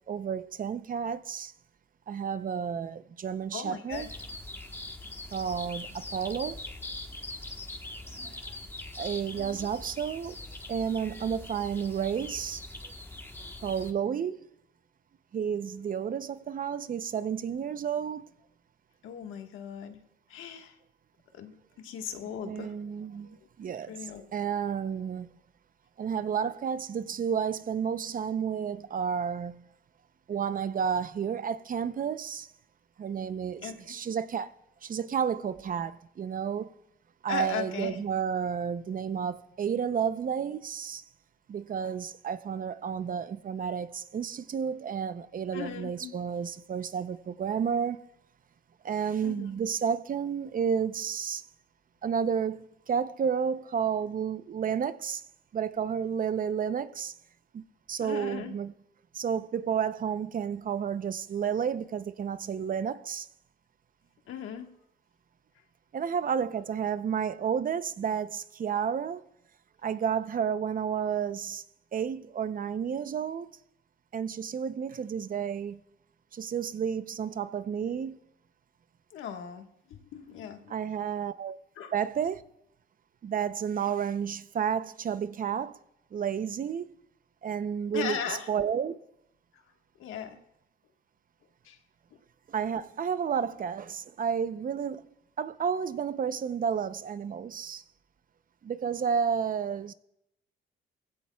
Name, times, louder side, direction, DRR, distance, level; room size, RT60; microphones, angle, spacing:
voice 1, 0.1-1.5 2.1-4.1 5.3-6.6 8.2-8.4 9.0-10.4 10.7-12.6 13.6-14.5 15.3-18.3 22.4-23.9 24.3-25.3 26.0-29.6 30.3-32.5 33.0-34.5 34.8-36.7 37.2-41.0 41.5-48.0 48.8-51.5 52.0-55.2 55.5-57.1 57.5-58.7 59.1-63.3 65.9-69.2 69.8-71.6 71.9-73.5 74.1-75.8 76.3-78.2 80.7-81.6 81.9-82.4 83.2-85.8 86.1-86.9 87.4-88.2 88.5-88.9 92.5-95.1 95.4-97.8 98.6-99.9, right 7 dB, 45° right, 0.7 m, -31 dB
voice 2, 3.5-4.1 9.4-9.7 19.0-20.0 20.3-20.8 21.3-22.8 23.2-23.5 23.9-24.2 33.6-33.7 37.3-38.0 45.5-46.1 49.2-49.5 58.0-58.5 64.3-64.7 79.1-80.7 81.7-81.9 87.9-88.5 89.5-89.6 90.0-90.4 91.6-91.8 92.1-92.2, left 8 dB, 85° left, 1.5 m, -38 dB
sound 1, 3.9-13.9, left 2 dB, 10° left, 1.3 m, -42 dB
19.0 x 16.0 x 2.3 m
cardioid pair, 90°, 20 cm